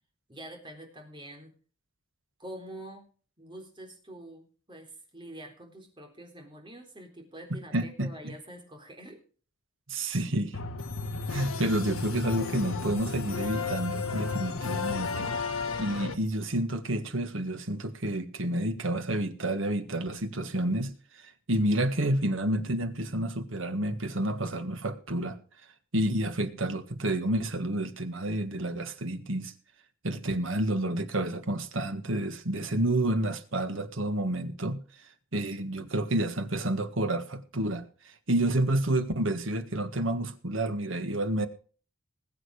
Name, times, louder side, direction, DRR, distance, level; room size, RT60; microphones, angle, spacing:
voice 1, 0.3-1.5 2.4-3.1 3.4-9.2, right 1 dB, 25° right, 3.8 m, -46 dB
voice 2, 7.7-8.3 9.9-10.6 11.3-15.3 15.8-20.9 21.5-25.4 25.9-29.5 30.0-34.8 35.3-37.8 38.3-41.5, right 1 dB, 65° right, 1.7 m, -29 dB
sound 1, 10.5-16.1, left 4 dB, 80° left, 1.3 m, -33 dB
20.0 x 7.7 x 4.9 m
head